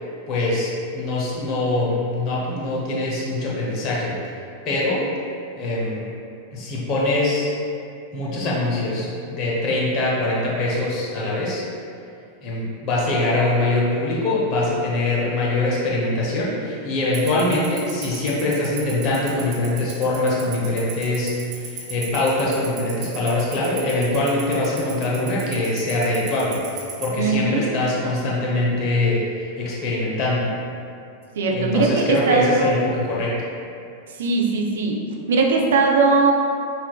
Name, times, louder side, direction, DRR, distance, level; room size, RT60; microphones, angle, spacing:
voice 1, 0.3-4.2 4.6-5.0 5.5-6.1 6.5-7.5 8.1-11.6 12.4-30.5 31.5-33.4, left 2 dB, 40° left, -5 dB, 0.8 m, -23 dB
Tick-tock, 17.1-27.0, right 11 dB, 35° right, 0.9 m, -33 dB
voice 2, 27.2-27.6 31.4-32.7 34.2-35.0 35.3-36.3, right 4 dB, 60° right, 0 dB, 0.4 m, -19 dB
5.6 x 2.5 x 2.3 m, 2.6 s
figure-of-eight pair, 90°, 0 cm